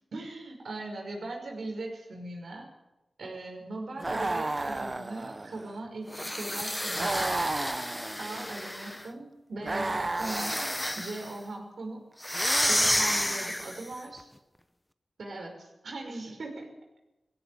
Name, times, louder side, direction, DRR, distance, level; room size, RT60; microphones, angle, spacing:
voice 1, 0.1-2.7 3.2-7.5 8.2-10.6 11.0-12.0 12.7-14.3 15.2-16.7, right 2 dB, 80° right, 2 dB, 5.7 m, -39 dB
sound 1, 4.0-5.8 7.0-8.5 9.6-11.0 12.3-13.4, right 2 dB, 35° right, 0.9 m, -33 dB
sound 2, 6.1-9.1 10.1-11.3 12.2-13.9, left 1 dB, 10° left, 1.0 m, -30 dB
19.5 x 16.5 x 8.7 m, 1.0 s
wide cardioid pair, 70°, 0 cm